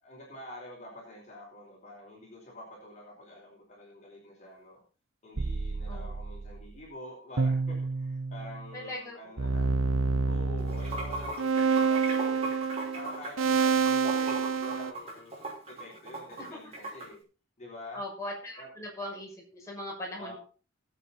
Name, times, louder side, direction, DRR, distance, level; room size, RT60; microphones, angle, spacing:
voice 1, 0.0-4.8 5.2-9.7 10.3-12.5 12.9-17.2 17.6-18.0 18.6-18.7 20.2-20.4, left 1 dB, 35° left, -3 dB, 4.6 m, -47 dB
sound 1, 5.4-6.7 7.4-8.7 9.4-14.9, right 5 dB, 85° right, 0.9 m, -28 dB
voice 2, 8.7-9.2 17.9-20.4, left 1 dB, 15° left, -3 dB, 6.3 m, -39 dB
Water / Sink (filling or washing), 10.6-17.1, right 2 dB, 30° right, 5.9 m, -38 dB
19.0 x 8.2 x 4.3 m, 0.37 s
head